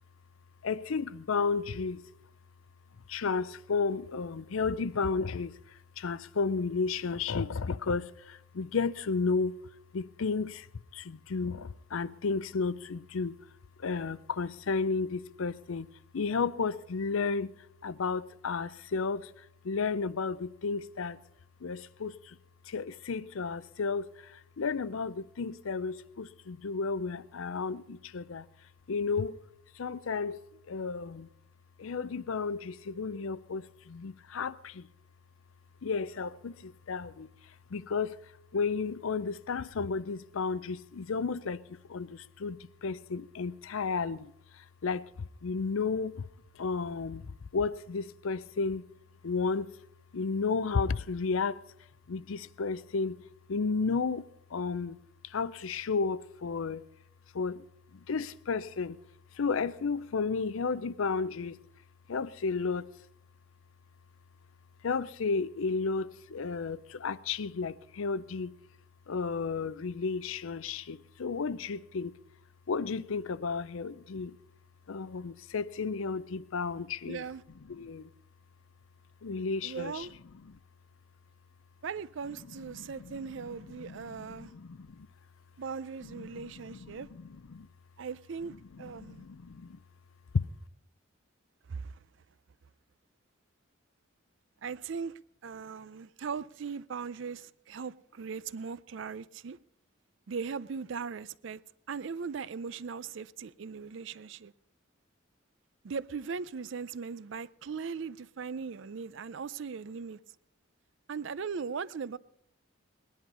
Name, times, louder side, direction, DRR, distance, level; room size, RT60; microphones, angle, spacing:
voice 1, 0.6-2.0 3.1-5.6 6.0-9.5 9.9-10.7 10.9-13.3 13.8-15.9 16.1-17.5 17.8-19.3 19.6-21.2 21.6-22.4 22.7-28.5 28.9-29.4 29.8-30.4 30.7-31.3 31.8-34.9 35.8-37.3 37.7-38.2 38.5-44.3 44.8-45.1 45.4-46.2 46.6-47.3 47.5-48.8 49.2-49.7 50.1-51.6 52.1-53.2 53.5-55.0 55.2-56.9 57.3-57.6 57.9-59.0 59.4-61.6 62.1-62.9 64.8-68.5 69.1-72.1 72.7-74.3 74.9-77.2 77.7-78.1 79.2-80.1 80.5-80.6 82.8-82.9 83.8-85.1 86.2-86.3 86.7-87.2 87.5-87.7 88.9-89.8, left 4 dB, 80° left, 0.5 m, -33 dB
voice 2, 77.1-77.4 79.6-80.1 81.8-84.5 85.6-87.1 88.0-89.3 91.7-92.0 94.6-99.6 100.3-101.6 101.9-104.5 105.8-110.2 111.1-112.2, right 5 dB, 65° right, 0.4 m, -39 dB
19.0 x 11.0 x 5.5 m
head